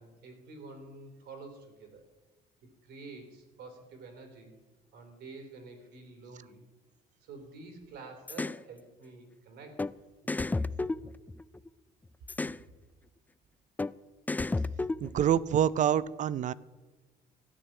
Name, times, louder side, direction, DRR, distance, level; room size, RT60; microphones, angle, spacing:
voice 1, 0.0-2.0 2.8-4.5 4.9-6.6 7.2-9.8 10.2-11.0, right 3 dB, 75° right, 5 dB, 3.3 m, -49 dB
sound 1, 8.3-8.6 9.8-9.9 10.3-11.7 12.3-12.6 13.8-13.9 14.3-15.4, left 3 dB, 10° left, 0.3 m, -32 dB
voice 2, 15.0-16.5, right 9 dB, 45° right, 18 dB, 0.5 m, -26 dB
13.5 x 6.6 x 9.9 m, 1.3 s
cardioid pair, 110°, 17 cm